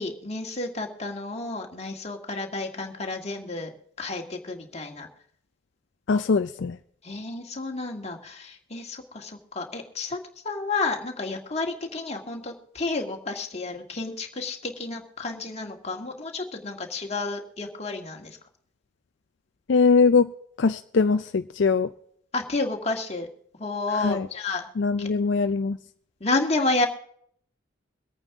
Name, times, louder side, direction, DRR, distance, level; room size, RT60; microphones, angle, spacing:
voice 1, 0.0-5.1 7.0-10.2 10.4-18.4 22.3-23.3 23.6-24.7 25.0-25.1 26.2-26.9, left 3 dB, 35° left, 2 dB, 1.7 m, -31 dB
voice 2, 6.1-6.8 19.7-20.3 20.6-21.9 24.0-24.3 24.8-25.8, left 4 dB, 65° left, 8 dB, 0.4 m, -21 dB
23.0 x 9.0 x 3.6 m, 0.64 s
head